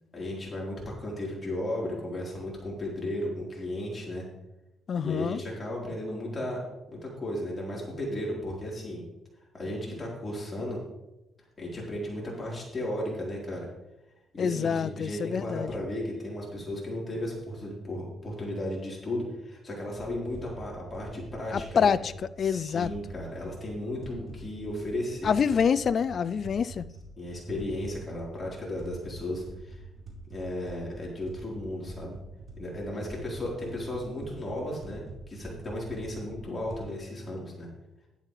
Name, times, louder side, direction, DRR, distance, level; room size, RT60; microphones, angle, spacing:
voice 1, 0.1-4.2 5.0-9.0 9.5-10.8 11.6-13.7 14.3-22.0 22.4-25.3 27.2-29.8 30.3-32.1 32.6-37.7, left 1 dB, 30° left, 4.1 m, -35 dB
voice 2, 4.9-5.4 14.4-15.7 21.5-22.9 25.2-26.8, left 7 dB, 50° left, 0.4 m, -26 dB
sound 1, 20.0-36.8, right 2 dB, 40° right, 4.1 m, -45 dB
11.5 x 11.0 x 3.3 m
cardioid pair, 90°, 0 cm